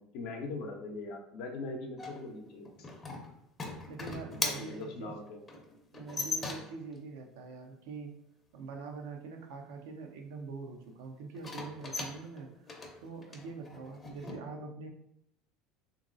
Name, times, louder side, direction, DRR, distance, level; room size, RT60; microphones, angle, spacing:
voice 1, 0.0-2.9 4.3-5.4, left 3 dB, 70° left, 2 dB, 0.6 m, -41 dB
sound 1, 2.0-6.9 11.3-14.4, left 3 dB, 30° left, 0.6 m, -39 dB
voice 2, 3.9-5.2 5.9-8.2 8.5-12.7 13.0-14.9, right 4 dB, 80° right, 3 dB, 0.5 m, -44 dB
2.9 x 2.6 x 2.5 m, 0.73 s
hypercardioid pair, 85°, 0 cm